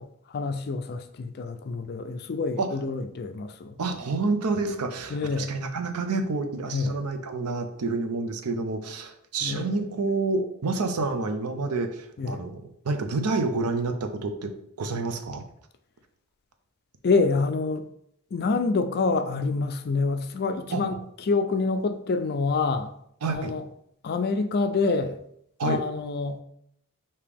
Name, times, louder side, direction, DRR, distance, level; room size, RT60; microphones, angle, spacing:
voice 1, 0.3-3.8 5.1-5.6 6.7-7.0 9.4-9.7 12.2-12.4 17.0-17.8 18.3-21.0 21.3-22.9 23.3-23.6 24.0-25.2 25.6-26.4, left 4 dB, 45° left, 8 dB, 0.4 m, -27 dB
voice 2, 3.8-15.4 20.7-20.8 23.2-23.5 25.6-25.8, right 3 dB, 90° right, 7 dB, 0.6 m, -28 dB
4.9 x 2.9 x 3.4 m, 0.72 s
head